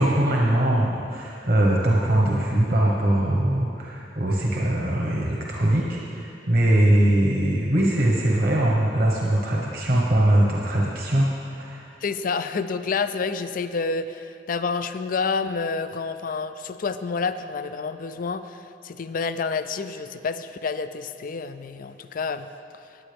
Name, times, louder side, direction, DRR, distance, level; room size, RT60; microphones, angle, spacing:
voice 1, 0.0-11.9, right 1 dB, 55° right, -3 dB, 1.2 m, -21 dB
voice 2, 12.0-22.5, left 4 dB, 50° left, 11 dB, 0.4 m, -29 dB
16.0 x 9.5 x 3.5 m, 2.7 s
head